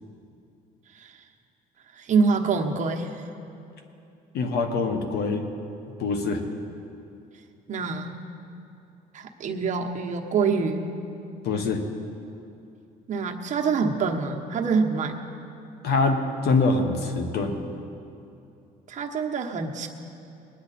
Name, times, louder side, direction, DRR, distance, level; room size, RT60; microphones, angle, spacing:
voice 1, 1.9-3.1 7.7-8.1 9.1-10.9 13.1-15.2 18.9-19.9, right 5 dB, 45° right, 2 dB, 1.1 m, -25 dB
voice 2, 4.3-5.4 6.0-6.4 11.4-11.8 15.8-16.2 16.4-17.6, left 3 dB, 70° left, 5 dB, 1.4 m, -24 dB
20.0 x 10.0 x 4.2 m, 2.7 s
cardioid pair, 110°, 17 cm